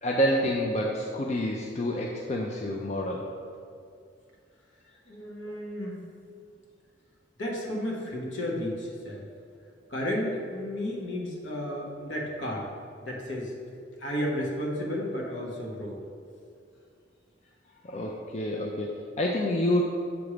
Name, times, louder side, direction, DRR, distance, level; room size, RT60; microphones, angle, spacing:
voice 1, 0.0-3.3 5.4-5.5 17.8-19.8, equal, 35° left, -1 dB, 0.4 m, -28 dB
voice 2, 5.1-6.0 7.4-9.3 9.9-12.7 13.0-13.5 14.0-16.0, left 1 dB, 80° left, -2 dB, 1.2 m, -32 dB
7.0 x 3.2 x 4.9 m, 2.4 s
head